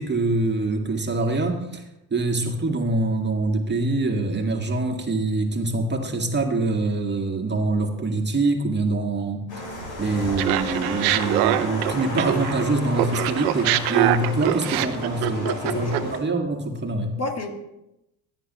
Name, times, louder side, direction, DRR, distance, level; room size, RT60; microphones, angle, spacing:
voice 1, 0.0-1.8 2.1-9.4 10.0-17.1, right 2 dB, 25° right, 3 dB, 1.8 m, -24 dB
Streets of Riga Latvia. Music on Dome square, 9.5-16.2, left 1 dB, 70° left, 4.5 m, -33 dB
Laughter, 10.4-12.6 12.9-16.2, right 15 dB, 80° right, 0.8 m, -24 dB
voice 2, 15.4-16.1 17.2-17.5, left 3 dB, 35° left, 4 dB, 2.0 m, -30 dB
16.5 x 9.6 x 3.0 m, 0.89 s
hypercardioid pair, 70°, 45 cm